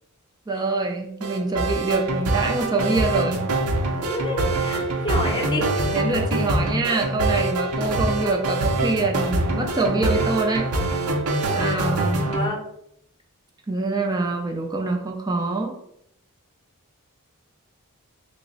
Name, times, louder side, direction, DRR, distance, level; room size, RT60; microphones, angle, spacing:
voice 1, 0.5-3.4 5.3-5.4 5.9-10.7 11.5-12.3 13.7-15.7, right 3 dB, 20° right, 2 dB, 0.4 m, -25 dB
sound 1, 1.2-12.5, right 2 dB, 80° right, 0.6 m, -24 dB
voice 2, 4.0-5.7 11.5-11.8 12.2-12.6, left 1 dB, 20° left, 0 dB, 0.7 m, -29 dB
3.4 x 2.0 x 3.9 m, 0.74 s
head